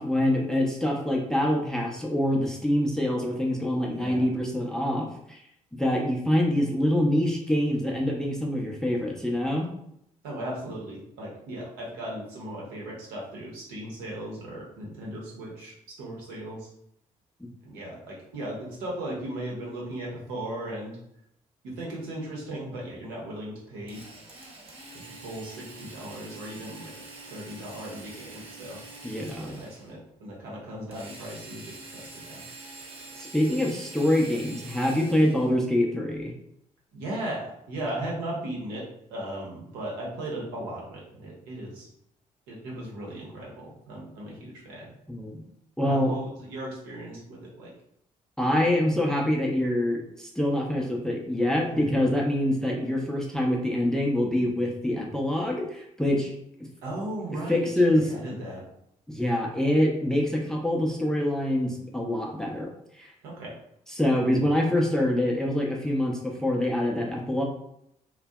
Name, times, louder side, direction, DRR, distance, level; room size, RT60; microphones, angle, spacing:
voice 1, 0.0-5.4 5.8-9.7 29.0-29.6 33.2-36.3 45.1-45.4 45.8-46.1 48.4-56.3 57.5-58.1 59.1-62.7 63.0-63.1 64.0-67.4, left 1 dB, 5° left, -1 dB, 0.6 m, -25 dB
voice 2, 10.2-16.7 17.6-21.0 21.6-24.0 25.2-26.9 27.3-28.8 29.2-32.4 36.9-41.9 42.5-44.9 45.8-47.7 51.7-51.9 56.8-58.6 63.2-63.6, right 1 dB, 70° right, -4 dB, 0.8 m, -37 dB
Drill, 23.9-30.0 30.9-35.6, right 3 dB, 30° right, 0.8 m, -45 dB
2.5 x 2.1 x 2.2 m, 0.75 s
figure-of-eight pair, 45°, 18 cm